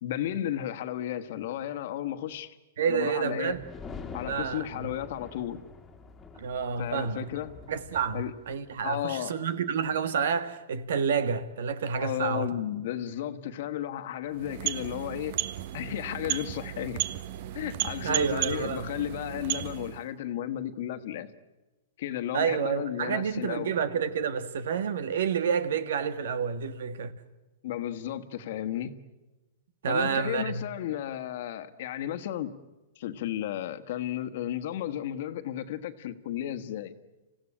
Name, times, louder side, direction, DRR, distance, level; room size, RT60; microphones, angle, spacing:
voice 1, 0.0-2.6 2.9-3.6 4.1-5.6 6.8-7.5 8.1-8.3 8.8-9.3 12.0-15.4 15.7-17.0 17.5-21.3 22.0-23.8 27.6-29.0 29.9-32.5 33.0-36.9, left 11 dB, 60° left, 1.4 m, -33 dB
voice 2, 2.8-3.6 4.2-4.9 6.4-7.3 7.7-12.5 18.0-18.9 22.3-27.1 29.8-30.6, right 6 dB, 75° right, 1.6 m, -29 dB
sound 1, 3.5-8.9, left 5 dB, 10° left, 2.0 m, -46 dB
sound 2, 14.3-20.1, right 14 dB, 50° right, 0.8 m, -34 dB
26.5 x 16.0 x 10.0 m
hypercardioid pair, 150°, 0 cm